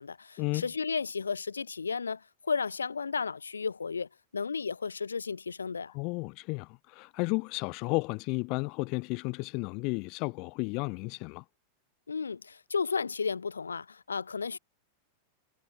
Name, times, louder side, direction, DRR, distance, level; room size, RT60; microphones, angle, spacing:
voice 1, 0.0-5.9 12.1-14.6, left 5 dB, 75° left, 0.8 m, -33 dB
voice 2, 5.9-11.4, left 29 dB, 45° left, 0.4 m, -33 dB
figure-of-eight pair, 90°, 0 cm